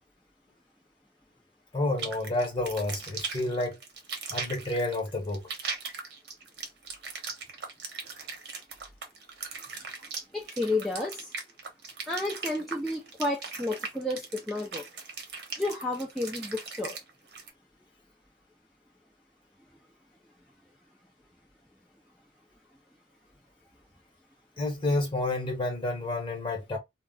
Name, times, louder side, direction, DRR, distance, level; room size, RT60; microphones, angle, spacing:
voice 1, 1.7-3.8 4.3-5.4 24.6-26.8, left 2 dB, 30° left, 1.0 m, -29 dB
sound 1, 2.0-17.5, right 5 dB, 65° right, 0.8 m, -39 dB
voice 2, 10.3-11.3 12.1-14.8 15.6-17.0, left 2 dB, ahead, 0.5 m, -31 dB
2.4 x 2.1 x 3.6 m
head